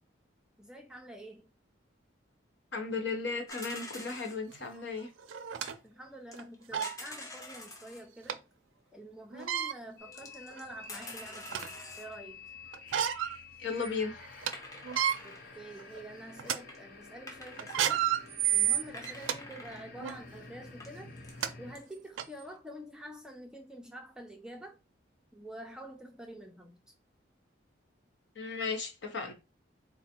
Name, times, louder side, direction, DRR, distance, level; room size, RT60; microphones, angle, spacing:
voice 1, 0.6-1.5 5.8-8.5 8.9-12.5 15.2-18.1 18.5-21.1 21.6-24.8 25.3-26.8, right 1 dB, 5° right, 0.4 m, -47 dB
voice 2, 2.7-5.1 13.6-14.2 28.3-29.3, left 4 dB, 70° left, 1.1 m, -35 dB
sound 1, 3.5-4.4 5.6-5.8 6.3-8.0 9.4-9.5 10.1-12.2 14.5-15.5 16.3-16.4 16.7-16.8 17.3-17.8 18.3-18.4 18.6-19.9 20.4-20.5 20.8-21.4 21.7-21.8, left 2 dB, 15° left, 0.7 m, -46 dB
sound 2, 4.5-4.6 5.3-5.7 6.3-6.4 6.7-7.0 8.3-8.4 9.3-9.7 10.5-10.6 11.1-11.8 12.7-13.4 13.8-13.9 14.2-14.5 14.8-15.2 15.8-16.0 16.4-16.6 17.6-19.4 20.0-20.2 21.0-21.1 21.4-21.5 22.2-22.3, right 10 dB, 85° right, 0.4 m, -30 dB
sound 3, 10.0-21.8, left 4 dB, 50° left, 0.8 m, -50 dB
4.0 x 2.1 x 4.3 m
head